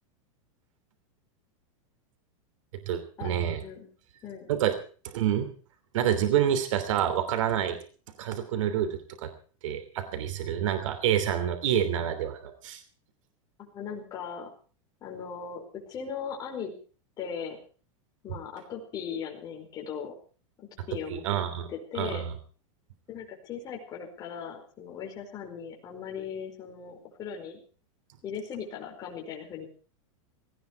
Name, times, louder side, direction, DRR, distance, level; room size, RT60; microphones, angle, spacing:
voice 1, 2.9-3.6 4.5-4.7 5.1-5.5 5.9-7.8 8.2-9.3 9.6-12.8 18.3-18.4 21.1-21.7 21.9-22.3, right 10 dB, 70° right, 10 dB, 3.1 m, -27 dB
voice 2, 13.6-14.5 15.0-16.7 17.2-17.6 18.2-20.1 20.6-21.2 21.7-22.2 23.1-27.6 28.2-29.7, left 7 dB, 25° left, 0 dB, 4.9 m, -38 dB
18.0 x 16.0 x 4.7 m, 0.39 s
supercardioid pair, 165°, 17 cm